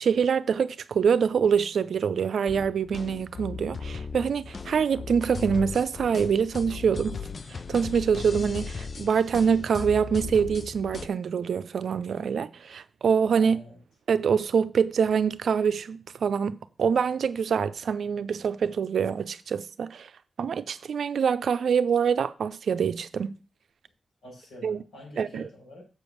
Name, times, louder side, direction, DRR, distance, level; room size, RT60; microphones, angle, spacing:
voice 1, 0.0-7.2 7.7-13.6 14.1-20.1 20.4-23.3 24.6-24.8 25.2-25.5, right 6 dB, 75° right, 0.5 m, -25 dB
sound 1, 2.5-11.1, left 5 dB, 55° left, 0.5 m, -37 dB
voice 2, 13.3-13.8 24.2-25.8, left 1 dB, 85° left, 5.9 m, -46 dB
7.5 x 5.3 x 6.3 m
cardioid pair, 45°, 0 cm